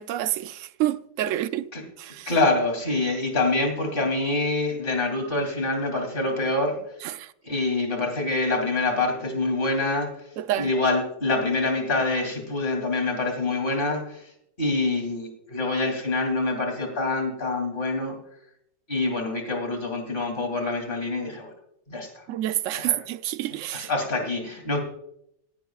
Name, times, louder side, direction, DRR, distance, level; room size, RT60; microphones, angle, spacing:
voice 1, 0.0-1.7 2.0-2.3 7.0-7.3 10.4-10.7 22.3-23.9, right 13 dB, 65° right, 0.8 m, -28 dB
voice 2, 2.3-6.8 7.4-10.1 10.6-14.3 14.6-18.2 18.9-21.5 21.9-22.2 22.7-23.0 23.7-24.8, left 2 dB, 30° left, 3.2 m, -26 dB
18.0 x 17.0 x 2.4 m
omnidirectional pair, 1.8 m